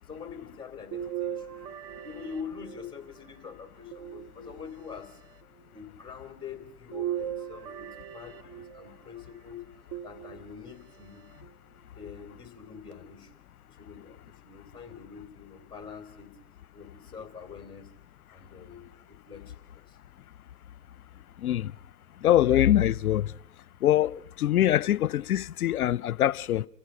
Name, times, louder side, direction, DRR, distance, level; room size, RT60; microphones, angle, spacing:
voice 1, 0.0-1.6 2.0-5.2 5.7-7.9 8.1-9.6 10.0-11.3 11.9-13.3 13.7-16.3 16.7-17.9 18.3-20.0, left 6 dB, 10° left, 2.8 m, -44 dB
sound 1, 0.9-3.2 3.9-4.9 6.9-9.0 9.9-10.8 11.4-11.5 12.9-13.0, right 11 dB, 30° right, 0.7 m, -38 dB
voice 2, 22.2-23.3 23.8-26.7, left 12 dB, 75° left, 0.7 m, -23 dB
29.5 x 14.5 x 6.1 m
hypercardioid pair, 130°, 45 cm